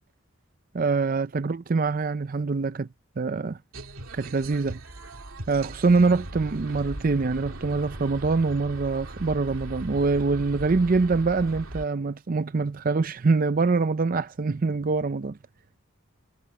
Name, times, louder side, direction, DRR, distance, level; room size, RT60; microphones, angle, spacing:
voice 1, 0.7-2.9 3.2-3.6 4.1-4.8 5.5-15.4, right 4 dB, 45° right, 0.5 m, -24 dB
sound 1, 3.7-11.9, right 1 dB, 90° right, 2.6 m, -39 dB
head